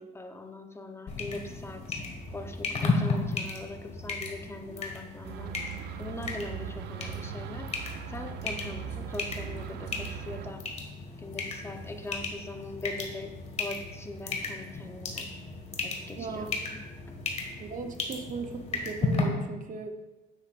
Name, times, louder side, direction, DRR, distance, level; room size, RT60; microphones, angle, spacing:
voice 1, 0.0-2.0 2.3-5.5 5.8-10.6 11.2-13.3 13.6-15.3 15.8-16.8, left 2 dB, 15° left, 5 dB, 0.8 m, -41 dB
sound 1, 1.1-19.2, left 3 dB, 40° left, 1.6 m, -35 dB
sound 2, 5.2-10.5, right 10 dB, 75° right, 0.5 m, -39 dB
voice 2, 16.2-16.5 17.6-20.0, right 5 dB, 50° right, 6 dB, 0.8 m, -37 dB
9.6 x 8.2 x 2.5 m, 1.1 s
cardioid pair, 110°, 17 cm